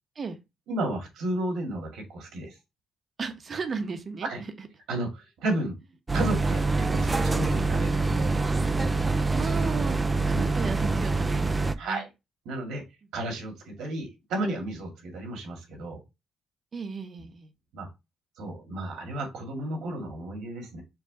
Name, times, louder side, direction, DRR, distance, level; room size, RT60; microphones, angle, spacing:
voice 1, 0.7-2.6 4.2-4.4 4.9-5.8 6.1-8.4 10.3-10.4 11.8-12.1 12.5-12.8 13.1-16.0 17.7-17.9 18.4-20.8, right 1 dB, 80° right, 2.0 m, -33 dB
voice 2, 3.2-4.3 4.6-4.7 9.3-10.0 10.4-12.0 16.7-17.5, right 5 dB, 45° right, 0.9 m, -35 dB
sound 1, 6.1-11.7, right 3 dB, 20° right, 0.4 m, -25 dB
4.7 x 2.3 x 4.8 m
cardioid pair, 90°, 0 cm